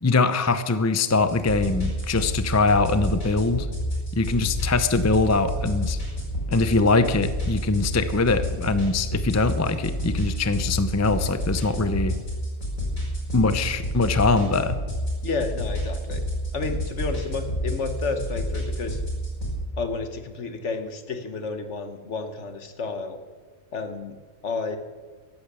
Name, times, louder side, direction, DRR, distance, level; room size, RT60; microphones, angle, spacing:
voice 1, 0.0-3.7 4.1-6.0 6.5-12.2 13.3-14.8, left 3 dB, 20° left, 11 dB, 0.5 m, -22 dB
sound 1, 1.1-19.5, equal, 80° left, 5.3 m, -29 dB
voice 2, 15.2-16.2 16.5-19.0 19.8-23.2 23.7-24.2 24.4-24.8, left 4 dB, 60° left, 8 dB, 1.6 m, -31 dB
14.5 x 11.0 x 6.9 m, 1.4 s
omnidirectional pair, 1.4 m